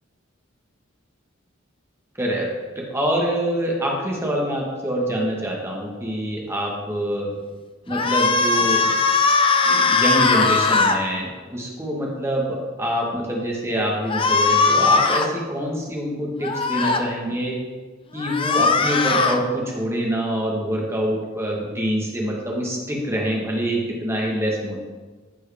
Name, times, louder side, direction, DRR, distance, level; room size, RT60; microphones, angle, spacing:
voice 1, 2.2-2.5 2.7-7.3 7.9-9.0 9.6-17.6 18.1-24.8, equal, 15° right, -2 dB, 1.4 m, -25 dB
sound 1, 7.9-11.0 14.1-15.3 16.4-17.0 18.2-19.4, left 4 dB, 25° left, 0.5 m, -19 dB
13.5 x 4.7 x 3.5 m, 1.4 s
head